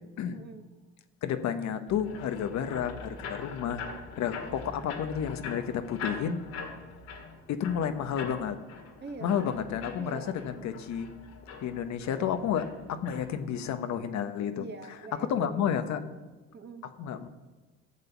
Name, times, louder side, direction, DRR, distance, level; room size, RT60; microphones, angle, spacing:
voice 1, 0.3-0.7 9.0-9.7 10.0-10.7 14.5-16.1 16.5-16.9, right 4 dB, 35° right, 6 dB, 1.5 m, -44 dB
voice 2, 1.2-3.8 4.1-6.4 7.5-8.6 9.2-11.1 11.6-14.7 15.3-16.0 17.0-17.3, left 8 dB, 55° left, 9 dB, 1.0 m, -31 dB
sound 1, 1.9-13.2, left 4 dB, 80° left, 2.1 m, -43 dB
12.5 x 6.7 x 7.0 m, 1.2 s
hypercardioid pair, 70°, 33 cm